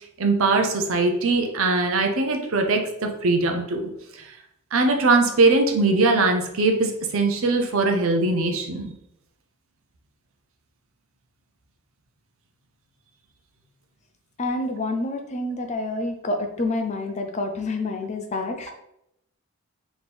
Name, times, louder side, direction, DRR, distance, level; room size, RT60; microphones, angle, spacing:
voice 1, 0.2-4.3 4.7-8.9, right 3 dB, 70° right, 4 dB, 0.6 m, -21 dB
voice 2, 14.4-18.7, left 2 dB, 30° left, 4 dB, 0.4 m, -28 dB
4.2 x 3.0 x 3.4 m, 0.79 s
head